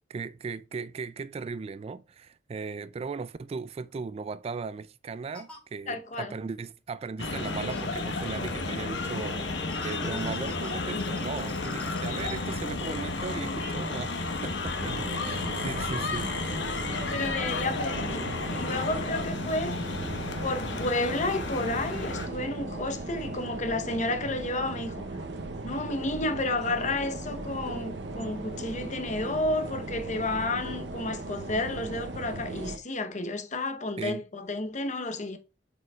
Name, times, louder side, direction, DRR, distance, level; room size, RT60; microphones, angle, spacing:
voice 1, 0.0-9.5 9.8-16.5 34.0-34.2, right 4 dB, 35° right, 0.3 m, -37 dB
sound 1, 3.9-4.0 5.3-5.6 7.4-7.9 9.7-12.6, left 1 dB, 5° left, 2.2 m, -48 dB
voice 2, 5.9-6.3 17.1-19.8 20.4-25.1 25.6-35.4, left 2 dB, 45° left, 0.9 m, -31 dB
sound 2, 7.2-22.3, left 3 dB, 80° left, 1.1 m, -32 dB
sound 3, 14.8-32.8, right 2 dB, 75° right, 0.8 m, -38 dB
7.6 x 5.2 x 2.4 m
head